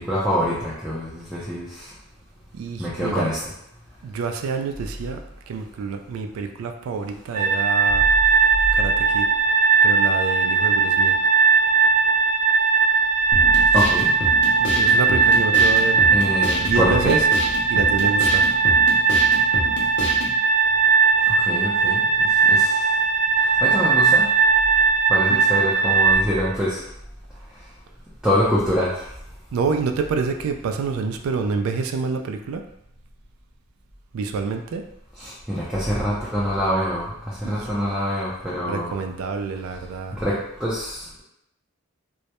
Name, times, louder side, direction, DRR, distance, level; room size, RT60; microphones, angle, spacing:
voice 1, 0.0-1.8 2.8-3.4 13.7-14.1 16.1-17.2 21.5-22.8 23.6-24.3 25.1-26.8 28.2-28.9 35.2-38.9 40.1-41.0, equal, 5° right, -9 dB, 0.4 m, -25 dB
voice 2, 2.5-3.3 4.0-8.0 8.7-9.3 9.8-11.1 12.8-12.9 14.6-16.0 16.6-17.2 17.7-18.4 25.3-25.4 29.5-32.6 34.1-34.8 37.4-37.7 38.7-40.2, right 5 dB, 90° right, 7 dB, 0.3 m, -27 dB
sound 1, 7.3-26.2, right 5 dB, 35° right, 0.9 m, -18 dB
sound 2, 13.3-20.3, left 1 dB, 60° left, 0.5 m, -28 dB
2.2 x 2.0 x 2.8 m, 0.79 s
head